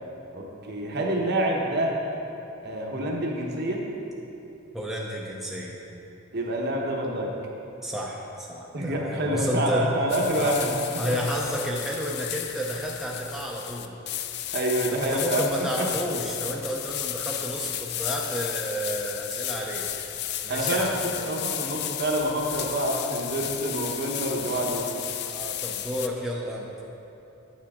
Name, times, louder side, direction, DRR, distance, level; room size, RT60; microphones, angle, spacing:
voice 1, 0.3-2.0 2.6-3.9 6.3-7.4 8.7-11.2 14.5-15.4 15.8-15.9 20.5-24.9, right 1 dB, 50° right, 0 dB, 1.0 m, -27 dB
voice 2, 4.7-5.8 7.8-9.9 10.4-10.6 11.0-13.9 14.9-19.9 20.4-20.9 25.2-26.7, equal, ahead, -4 dB, 0.6 m, -31 dB
sound 1, 10.1-26.1, left 11 dB, 55° left, 0.4 m, -33 dB
9.6 x 7.4 x 3.6 m, 2.9 s
head